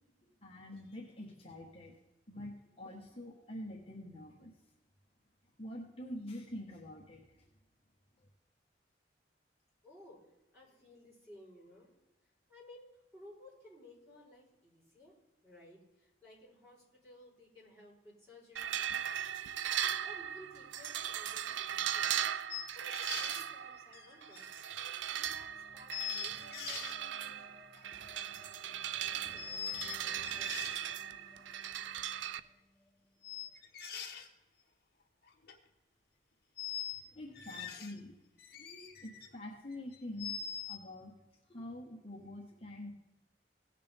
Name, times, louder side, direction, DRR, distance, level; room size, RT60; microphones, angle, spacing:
voice 1, 0.4-1.9 2.3-4.5 5.6-7.4 37.1-38.1 38.6-40.4 40.7-41.1 41.5-42.9, left 1 dB, 30° left, -3 dB, 1.5 m, -46 dB
voice 2, 9.8-10.2 10.5-11.9 12.5-15.2 15.4-18.9 20.0-22.2 22.7-24.5 24.8-27.5 28.9-29.5 33.2-33.3, left 1 dB, 15° right, -6 dB, 4.4 m, -57 dB
sound 1, 18.6-32.4, right 10 dB, 85° right, 0.4 m, -38 dB
sound 2, 22.5-23.5 23.9-24.9 25.4-25.5 25.9-27.0 27.7-28.1 29.4-30.0 30.2-30.8 31.6-31.7 33.2-34.3 35.2-35.6 36.6-37.0 37.4-38.0 38.4-39.3 39.7-40.8, left 8 dB, 55° left, 1.3 m, -43 dB
sound 3, 25.3-33.1, left 1 dB, 5° left, 0.8 m, -59 dB
17.5 x 6.6 x 3.5 m, 1.0 s
head